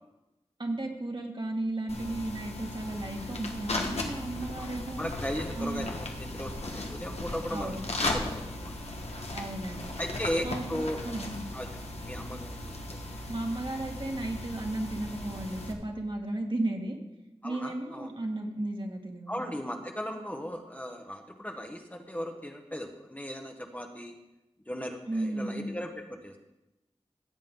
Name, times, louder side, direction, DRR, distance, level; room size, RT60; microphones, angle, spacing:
voice 1, 0.6-5.1 5.6-5.9 7.5-7.9 9.3-9.9 10.4-11.4 13.3-17.0 17.4-19.5 25.1-25.7, right 2 dB, 45° right, 1 dB, 1.9 m, -34 dB
sound 1, 1.9-15.7, left 2 dB, 70° left, 1.4 m, -37 dB
voice 2, 4.6-7.7 8.0-8.7 10.0-11.0 11.5-11.7 12.0-13.0 17.4-18.1 19.3-24.1 24.7-26.4, equal, 15° left, 3 dB, 1.2 m, -37 dB
16.0 x 7.6 x 3.8 m, 0.97 s
wide cardioid pair, 50°, 11 cm